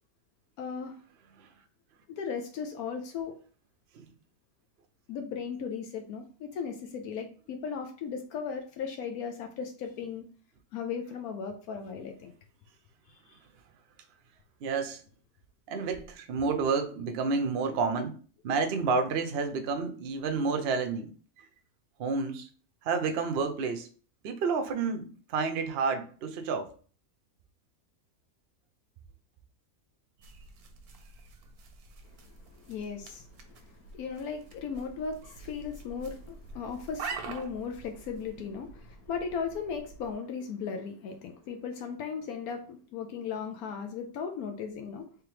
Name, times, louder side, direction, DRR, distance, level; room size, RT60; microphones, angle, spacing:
voice 1, 0.6-0.9 2.1-3.4 5.1-10.2 10.7-12.3 32.6-33.2 33.9-45.1, left 6 dB, 85° left, 1.1 m, -36 dB
voice 2, 14.6-15.0 15.7-18.2 18.4-21.1 22.0-22.5 22.8-23.9 24.2-26.7, right 4 dB, 60° right, 0.7 m, -30 dB
sound 1, 30.2-40.1, right 5 dB, 85° right, 1.2 m, -46 dB
3.5 x 3.4 x 3.1 m
omnidirectional pair, 1.5 m